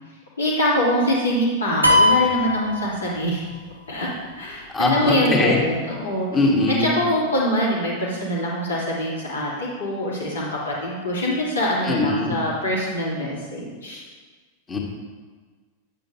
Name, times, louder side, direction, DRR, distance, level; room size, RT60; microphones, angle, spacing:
voice 1, 0.4-3.4 3.9-4.1 4.4-6.3 6.7-14.0, equal, 75° left, -5 dB, 2.5 m, -24 dB
sound 1, 1.8-3.5, left 2 dB, 85° right, 1.2 m, -19 dB
voice 2, 4.7-5.6 6.3-7.0 11.8-12.4 14.7-14.8, left 2 dB, 20° left, -1 dB, 1.8 m, -21 dB
10.5 x 8.7 x 2.8 m, 1.5 s
figure-of-eight pair, 90°, 0 cm